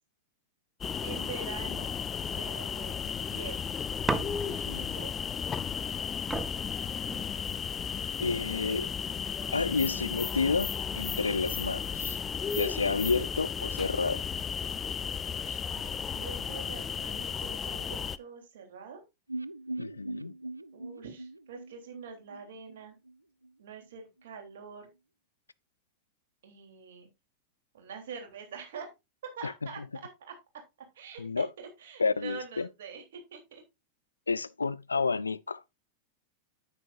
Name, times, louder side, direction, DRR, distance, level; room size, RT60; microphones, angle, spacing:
sound 1, 0.8-18.2, left 7 dB, 20° left, 0.4 m, -34 dB
voice 1, 1.0-1.9 2.3-3.7 4.5-5.1 8.4-8.9 15.3-19.0 20.7-23.0 23.6-24.9 26.4-27.1 27.7-28.9 29.4-29.8 30.3-30.4 30.9-33.6, right 6 dB, 60° right, 3.3 m, -45 dB
sound 2, 4.1-4.8 5.9-6.0 6.3-7.8 8.5-9.0, right 2 dB, 5° right, 0.9 m, -35 dB
voice 2, 4.5-4.9 8.2-8.9 9.5-12.2 12.6-14.3 19.8-20.3 29.4-29.5 31.2-31.5 32.0-32.7 34.3-35.6, left 4 dB, 75° left, 0.4 m, -30 dB
sound 3, 19.3-23.2 23.4-23.5 23.8-23.9, right 2 dB, 85° right, 0.4 m, -41 dB
9.7 x 9.1 x 2.6 m
figure-of-eight pair, 90°, 0 cm